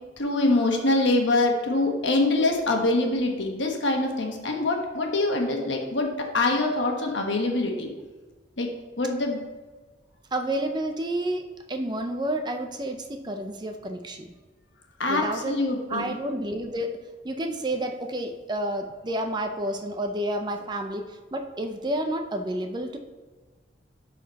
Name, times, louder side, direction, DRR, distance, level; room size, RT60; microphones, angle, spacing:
voice 1, 0.2-7.9 8.6-8.7 9.0-9.4 15.0-16.1, left 2 dB, 80° left, 2 dB, 1.3 m, -24 dB
voice 2, 10.3-14.3 15.1-15.6 15.9-16.9 17.2-23.0, right 1 dB, 25° right, 5 dB, 0.6 m, -30 dB
11.0 x 4.1 x 4.1 m, 1.3 s
head